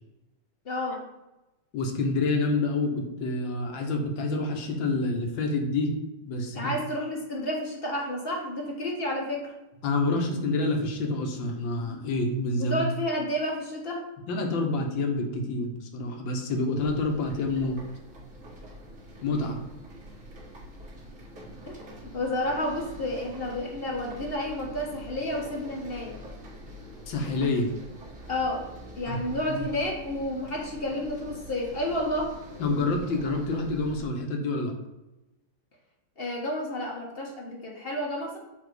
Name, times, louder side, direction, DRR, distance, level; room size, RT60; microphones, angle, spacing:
voice 1, 0.6-1.0 6.5-9.5 12.6-14.1 19.1-19.2 21.6-26.1 28.3-28.7 28.9-32.4 36.2-38.4, left 1 dB, 40° left, -1 dB, 0.8 m, -31 dB
voice 2, 1.7-5.9 6.2-6.7 9.8-12.9 14.3-17.8 19.2-19.6 27.1-27.7 29.1-29.2 29.5-29.6 32.6-34.7, left 2 dB, 65° left, 3 dB, 1.5 m, -28 dB
sound 1, 16.8-34.1, equal, 40° right, 1.9 m, -45 dB
7.3 x 3.0 x 4.8 m, 0.98 s
omnidirectional pair, 2.3 m